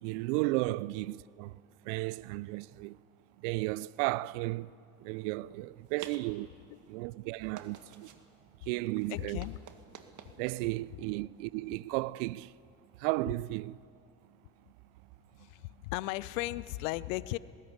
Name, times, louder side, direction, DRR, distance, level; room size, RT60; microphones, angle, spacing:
voice 1, 0.0-1.5 1.8-3.0 3.4-4.7 5.0-6.5 6.9-8.1 8.7-9.4 10.4-12.5 13.0-13.8, right 20 dB, 65° right, 0.5 m, -34 dB
sound 1, 5.3-12.8, right 7 dB, 50° right, 1.8 m, -54 dB
voice 2, 9.1-9.6 15.4-17.4, left 18 dB, 70° left, 0.7 m, -36 dB
19.5 x 17.5 x 9.7 m
hypercardioid pair, 60°, 40 cm